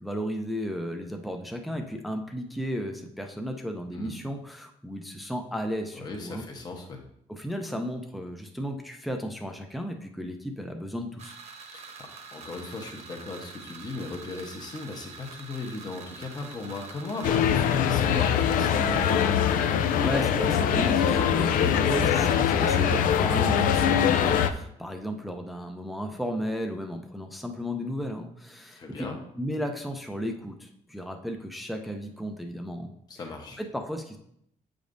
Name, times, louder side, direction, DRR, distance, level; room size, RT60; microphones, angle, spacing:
voice 1, 0.0-6.4 7.3-11.3 20.0-29.1 29.4-32.9 33.6-34.3, equal, ahead, 4 dB, 0.5 m, -34 dB
voice 2, 5.9-7.0 11.7-19.5 21.7-21.9 28.8-29.2 33.1-33.6, left 3 dB, 30° left, 1 dB, 0.9 m, -37 dB
sound 1, 11.2-17.4, right 5 dB, 50° right, 1.0 m, -45 dB
sound 2, 17.2-24.5, left 8 dB, 85° left, 0.5 m, -23 dB
8.3 x 5.1 x 2.6 m, 0.73 s
cardioid pair, 155°, 14 cm